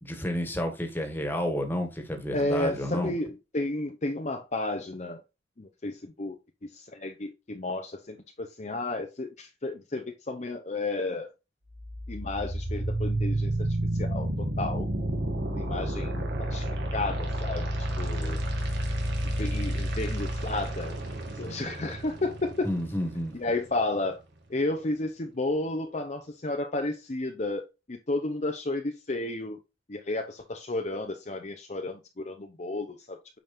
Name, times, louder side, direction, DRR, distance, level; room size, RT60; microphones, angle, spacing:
voice 1, 0.0-3.1 22.6-23.3, equal, 10° left, 1.7 m, -30 dB
voice 2, 2.3-5.2 5.6-11.3 12.1-13.7 13.9-14.9 15.5-18.4 19.4-21.0 21.4-22.7 23.3-24.2 24.5-29.6 29.9-33.2, left 2 dB, 40° left, 0.7 m, -32 dB
sound 1, 11.7-23.7, right 1 dB, 70° right, 2.2 m, -31 dB
9.0 x 5.2 x 2.6 m
head